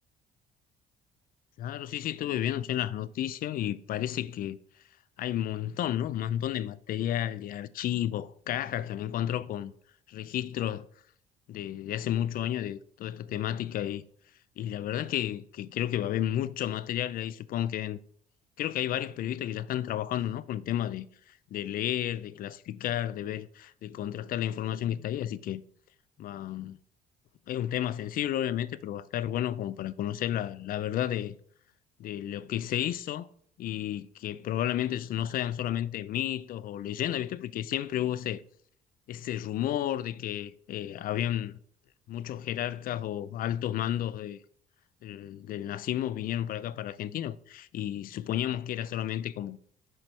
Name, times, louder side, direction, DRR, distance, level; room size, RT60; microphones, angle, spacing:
voice 1, 1.6-4.6 5.2-9.7 10.1-10.9 11.5-14.0 14.6-18.0 18.6-25.6 26.2-26.8 27.5-31.3 32.0-33.3 33.6-38.4 39.1-41.5 42.1-44.4 45.0-49.6, left 11 dB, 55° left, 0.4 m, -32 dB
7.7 x 4.5 x 3.3 m
cardioid pair, 110°, 17 cm